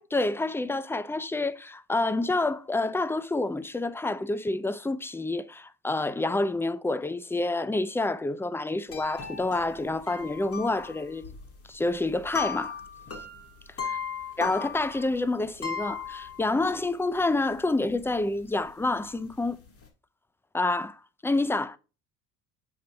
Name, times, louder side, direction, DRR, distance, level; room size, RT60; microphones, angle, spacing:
voice 1, 0.0-11.3 11.7-12.8 13.8-14.0 14.4-19.6 20.5-21.8, left 2 dB, 5° left, 0.5 m, -28 dB
sound 1, 8.9-16.8 17.2-17.3 17.5-18.1 18.4-19.9, left 6 dB, 35° left, 1.9 m, -37 dB
7.8 x 5.3 x 3.3 m
supercardioid pair, 75°, 39 cm